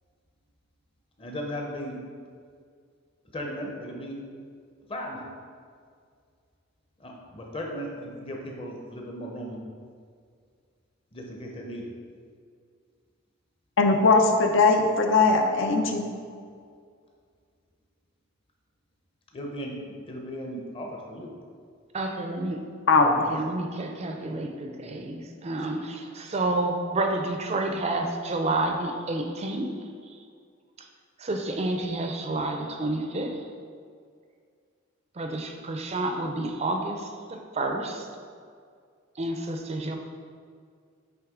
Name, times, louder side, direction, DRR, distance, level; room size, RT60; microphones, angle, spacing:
voice 1, 1.2-2.0 3.3-4.2 4.9-5.2 7.0-9.6 11.1-11.9 19.3-19.7 20.1-21.3 23.0-23.2, equal, 25° left, 0 dB, 0.7 m, -36 dB
voice 2, 13.8-16.0 22.9-23.2, left 3 dB, 65° left, 3 dB, 0.6 m, -20 dB
voice 3, 21.9-22.6 23.3-29.7 30.1-30.2 30.8-30.9 31.2-33.5 35.1-38.1 39.2-40.0, right 2 dB, 30° right, 3 dB, 0.4 m, -30 dB
7.9 x 3.2 x 3.6 m, 2.1 s
head